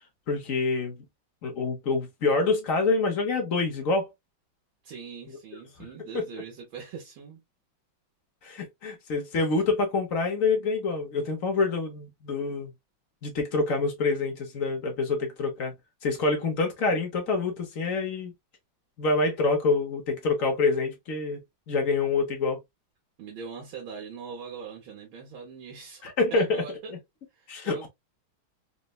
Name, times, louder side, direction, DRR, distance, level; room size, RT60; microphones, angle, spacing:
voice 1, 0.3-1.0 1.4-4.1 5.8-5.9 6.1-6.3 8.4-12.7 13.2-15.7 16.0-18.3 19.0-21.4 21.7-22.6 26.0-26.6 26.9-27.0 27.5-27.9, left 3 dB, 60° left, 0.9 m, -26 dB
voice 2, 4.8-7.4 23.2-27.0 27.3-27.9, right 6 dB, 75° right, 1.6 m, -42 dB
4.0 x 2.1 x 2.2 m
omnidirectional pair, 2.2 m